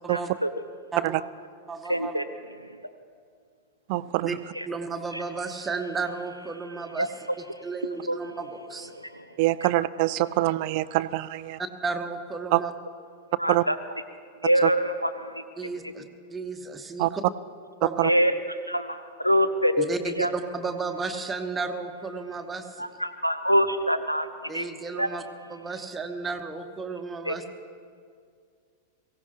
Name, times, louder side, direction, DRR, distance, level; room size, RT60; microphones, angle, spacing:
voice 1, 0.1-0.5 1.9-2.2 4.6-4.7 5.1-5.2 7.0-7.1 8.1-8.2 8.9-9.2 13.4-13.8 14.4-15.4 18.0-18.3 18.7-19.8 20.1-20.3 22.8-24.3 24.5-24.6 25.0-25.1 27.3-27.4, equal, 90° left, 10 dB, 0.6 m, -25 dB
voice 2, 1.7-2.2 4.2-4.3 4.7-8.9 11.6-12.7 15.6-16.0 16.3-17.2 17.8-18.0 19.8-22.9 24.5-25.2 25.5-27.4, right 4 dB, 15° right, 5 dB, 1.3 m, -33 dB
voice 3, 3.9-4.3 9.4-11.6 12.5-12.6 13.5-13.6 14.6-14.7 17.0-17.1 18.0-18.1, right 18 dB, 45° right, 17 dB, 0.4 m, -24 dB
23.5 x 16.5 x 3.0 m, 2.2 s
figure-of-eight pair, 90°, 0 cm